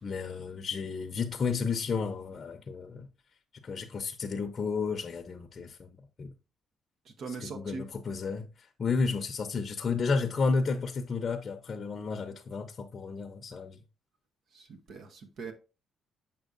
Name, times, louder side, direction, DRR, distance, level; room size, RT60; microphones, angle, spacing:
voice 1, 0.0-3.1 3.6-5.9 6.2-6.3 7.3-13.8, left 4 dB, 45° left, 0.6 m, -32 dB
voice 2, 7.1-7.9 14.5-15.5, right 4 dB, 65° right, 0.9 m, -41 dB
7.1 x 6.2 x 2.5 m
cardioid pair, 90°, 0 cm